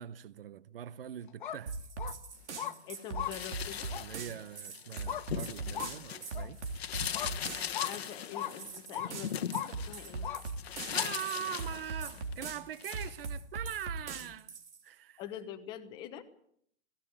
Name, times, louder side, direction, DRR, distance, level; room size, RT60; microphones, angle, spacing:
voice 1, 0.0-1.8 3.9-6.6 10.9-14.5 14.8-15.2, right 10 dB, 55° right, 0.9 m, -42 dB
sound 1, 1.3-1.6 2.0-2.1 2.6-2.7 3.1-3.3 3.9-4.0 5.1-5.2 5.7-5.9 6.3-6.5 7.1-7.3 7.7-7.9 8.3-8.5 8.9-9.1 9.5-9.7 10.2-10.4 11.0-11.1, left 10 dB, 50° left, 1.4 m, -37 dB
sound 2, 1.7-14.8, right 4 dB, 85° right, 3.5 m, -41 dB
voice 2, 2.9-3.9 7.8-10.3 15.2-16.2, left 10 dB, 15° left, 1.0 m, -45 dB
sound 3, 3.2-6.4 6.7-12.3 12.7-13.1, left 9 dB, 65° left, 1.3 m, -39 dB
17.5 x 17.0 x 8.7 m
hypercardioid pair, 170°, 33 cm